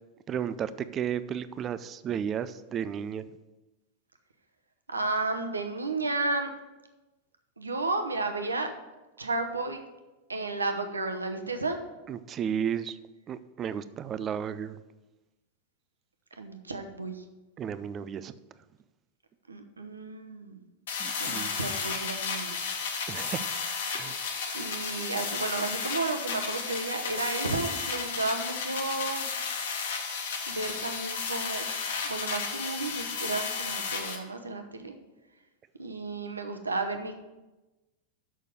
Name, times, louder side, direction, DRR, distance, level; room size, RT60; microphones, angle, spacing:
voice 1, 0.3-3.3 12.1-13.0 13.3-14.8 17.6-18.3 21.0-21.5 23.1-23.5 23.9-24.4, right 8 dB, 30° right, 14 dB, 0.4 m, -33 dB
voice 2, 4.9-6.5 7.6-8.7 9.2-9.8 10.3-11.8 16.4-17.2 19.5-20.6 21.2-22.7 24.5-29.3 30.5-31.6 32.0-34.9 35.8-37.1, right 3 dB, 75° right, 6 dB, 0.9 m, -32 dB
sound 1, 20.9-34.2, left 5 dB, 60° left, 1.2 m, -33 dB
6.6 x 6.2 x 6.8 m, 1.1 s
figure-of-eight pair, 90°, 0 cm